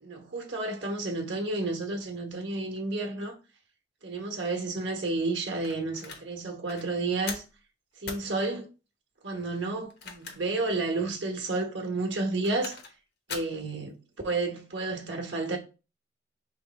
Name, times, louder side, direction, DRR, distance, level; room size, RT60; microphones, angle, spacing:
voice 1, 0.0-3.4 4.0-7.4 8.0-8.7 9.2-12.8 13.3-14.0 14.2-15.6, right 3 dB, 65° right, 1.2 m, -31 dB
sound 1, 5.6-6.2 6.7-6.8 7.3-7.5 8.0-8.3 9.8-10.6 11.0-11.1 12.2-12.9 13.3-13.6, left 5 dB, 55° left, 0.9 m, -40 dB
3.4 x 3.2 x 4.1 m
head